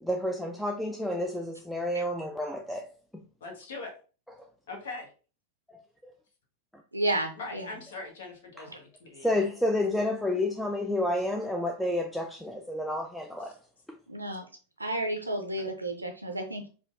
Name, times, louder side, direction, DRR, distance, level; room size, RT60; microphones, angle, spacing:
voice 1, 0.0-2.9 3.1-3.2 5.7-6.1 8.6-8.7 9.2-13.5, left 1 dB, ahead, 0.3 m, -30 dB
voice 2, 3.4-3.9 4.7-5.1 7.4-9.3, left 3 dB, 60° left, 1.0 m, -41 dB
voice 3, 6.9-7.7 8.7-8.8 14.1-14.4 14.8-16.7, right 1 dB, 85° right, 0.5 m, -32 dB
4.9 x 2.3 x 2.5 m
figure-of-eight pair, 90°, 0 cm